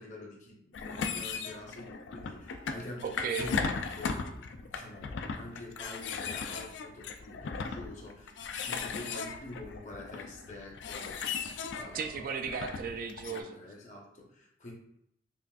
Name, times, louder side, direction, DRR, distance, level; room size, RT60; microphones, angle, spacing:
voice 1, 0.0-12.2 13.2-14.7, left 1 dB, 40° left, -1 dB, 0.8 m, -47 dB
sound 1, 0.7-13.4, left 5 dB, 80° left, 0.4 m, -37 dB
voice 2, 3.0-3.5 11.9-13.6, right 6 dB, 50° right, 7 dB, 0.3 m, -35 dB
5.7 x 2.4 x 2.3 m, 0.76 s
head